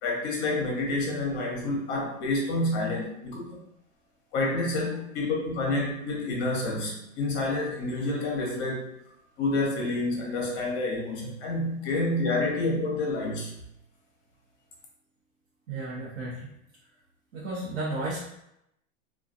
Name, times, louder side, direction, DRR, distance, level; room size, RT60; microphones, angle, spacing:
voice 1, 0.0-3.4 4.3-8.9 9.4-13.5, left 2 dB, 30° left, -2 dB, 0.7 m, -28 dB
voice 2, 15.7-16.5 17.3-18.2, right 2 dB, 75° right, -7 dB, 0.9 m, -33 dB
2.4 x 2.3 x 2.4 m, 0.80 s
supercardioid pair, 150°, 41 cm